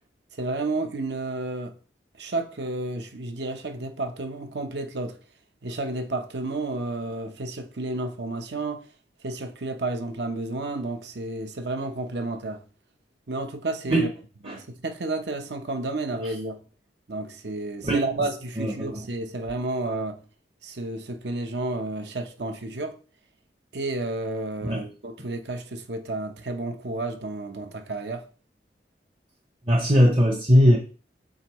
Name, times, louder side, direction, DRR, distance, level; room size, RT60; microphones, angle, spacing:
voice 1, 0.4-1.8 2.2-5.2 5.6-8.8 9.2-12.6 13.3-14.1 14.4-16.6 17.1-20.2 20.6-23.0 23.7-28.2, right 2 dB, 70° right, 0.9 m, -31 dB
voice 2, 17.8-18.2 18.6-19.0 24.6-24.8 29.7-30.8, equal, 30° right, 0.8 m, -20 dB
8.1 x 3.9 x 3.1 m
head